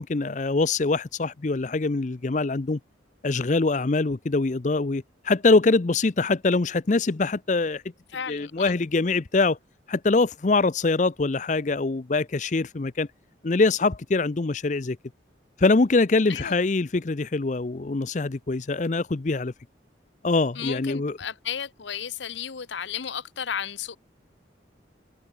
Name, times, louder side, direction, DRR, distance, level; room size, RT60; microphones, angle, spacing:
voice 1, 0.0-2.8 3.2-7.8 8.3-9.6 9.9-13.1 13.4-15.0 15.6-19.5 20.2-21.2, left 3 dB, 40° left, 0.5 m, -23 dB
voice 2, 8.1-8.7 16.3-16.5 20.6-24.0, left 8 dB, 75° left, 0.8 m, -33 dB
head